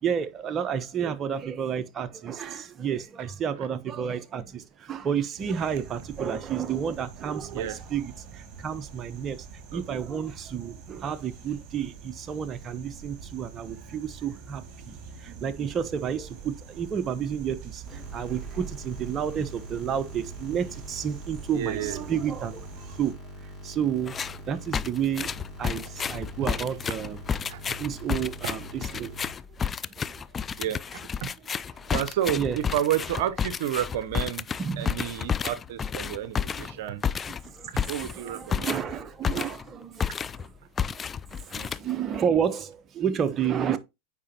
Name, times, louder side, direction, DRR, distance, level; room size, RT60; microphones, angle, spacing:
voice 1, 0.0-22.7 23.0-23.1 23.4-25.3 25.6-27.2 27.8-29.3 29.8-30.2 32.3-32.6 34.6-34.9 36.5-36.8 37.4-40.5 40.8-40.9 41.3-43.8, right 8 dB, 30° right, 0.9 m, -31 dB
sound 1, 5.4-23.1, right 6 dB, 45° right, 2.2 m, -45 dB
sound 2, 17.9-29.3, left 1 dB, 5° left, 4.1 m, -43 dB
voice 2, 21.5-22.0 26.4-26.7 27.5-27.8 28.4-28.5 30.6-31.3 31.9-34.5 34.8-37.0 37.9-38.8 39.3-39.5, right 11 dB, 70° right, 0.7 m, -31 dB
sound 3, 24.1-24.4 24.7-39.7 40.0-40.5 40.8-42.2, left 7 dB, 25° left, 0.3 m, -31 dB
8.6 x 4.9 x 2.9 m
hypercardioid pair, 100°, 0 cm